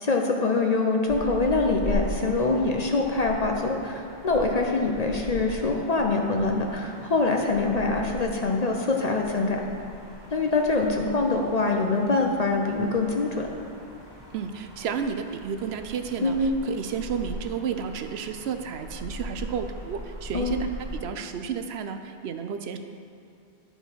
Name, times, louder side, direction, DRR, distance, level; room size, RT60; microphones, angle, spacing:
voice 1, 0.0-9.6 10.3-13.5 16.2-16.6 20.3-20.6, left 3 dB, 45° left, 1 dB, 0.6 m, -24 dB
sound 1, 1.0-21.0, equal, 25° right, 1.3 m, -40 dB
voice 2, 14.3-20.6 20.9-22.8, right 7 dB, 70° right, 7 dB, 0.8 m, -32 dB
11.0 x 4.7 x 5.6 m, 2.5 s
omnidirectional pair, 1.1 m